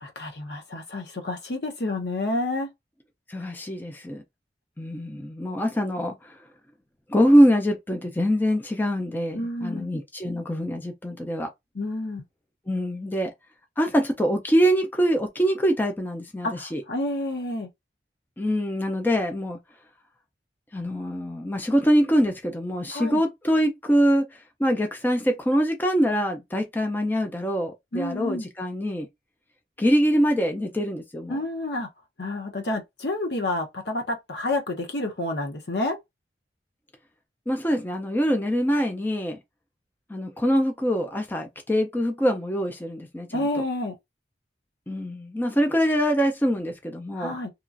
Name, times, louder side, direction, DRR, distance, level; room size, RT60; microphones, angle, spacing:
voice 1, 0.0-2.7 9.3-9.9 11.8-12.2 16.4-17.7 22.9-23.2 27.9-28.5 31.3-31.9 32.2-36.0 43.3-43.9 47.2-47.5, left 2 dB, 75° left, 0.8 m, -29 dB
voice 2, 3.3-4.2 4.8-6.4 7.1-11.5 12.7-13.3 13.8-16.8 18.4-19.6 20.7-29.1 29.8-31.4 37.5-39.4 40.1-43.6 44.9-47.4, equal, 10° left, 0.4 m, -24 dB
2.9 x 2.4 x 2.5 m
head